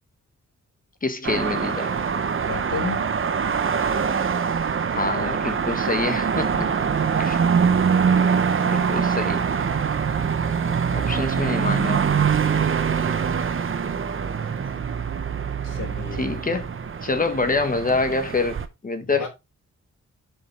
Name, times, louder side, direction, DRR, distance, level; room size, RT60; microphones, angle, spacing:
voice 1, 1.0-2.1 4.9-6.8 7.2-7.4 8.6-9.5 10.9-12.0 16.2-16.7 17.0-19.3, left 3 dB, 25° left, 1.4 m, -26 dB
sound 1, 1.2-18.7, right 6 dB, 40° right, 0.9 m, -24 dB
voice 2, 2.5-3.1 15.6-16.3 19.0-19.3, left 6 dB, 90° left, 3.9 m, -33 dB
11.0 x 5.2 x 3.2 m
wide cardioid pair, 150°, 31 cm